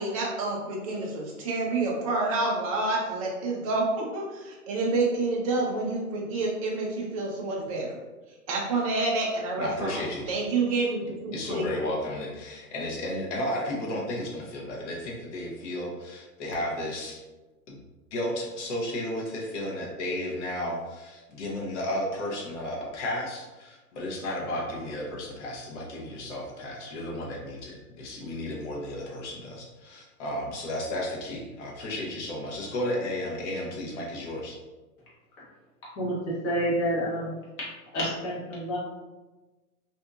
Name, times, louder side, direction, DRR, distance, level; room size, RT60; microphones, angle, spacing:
voice 1, 0.0-8.0 8.5-11.7, right 3 dB, 25° right, -2 dB, 0.4 m, -28 dB
voice 2, 9.6-10.2 11.3-17.2 17.7-17.8 18.1-34.6, left 1 dB, 50° left, -2 dB, 0.9 m, -33 dB
voice 3, 36.0-37.3 37.9-38.8, equal, 30° left, -7 dB, 1.1 m, -28 dB
2.7 x 2.6 x 2.3 m, 1.2 s
hypercardioid pair, 135°, 45 cm